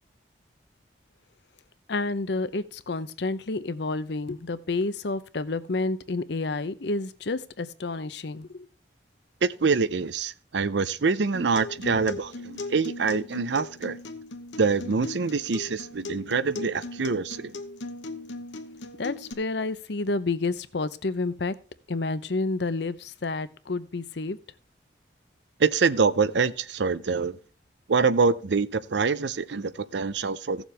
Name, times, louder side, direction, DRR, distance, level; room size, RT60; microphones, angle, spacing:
voice 1, 1.9-8.7 19.0-21.5 21.9-24.4, left 3 dB, 70° left, 0.7 m, -29 dB
voice 2, 9.4-14.0 14.6-17.5 25.6-27.4 27.9-30.6, right 4 dB, 75° right, 0.6 m, -25 dB
Acoustic guitar, 11.3-19.3, left 2 dB, 85° left, 1.1 m, -39 dB
16.5 x 7.1 x 3.4 m
head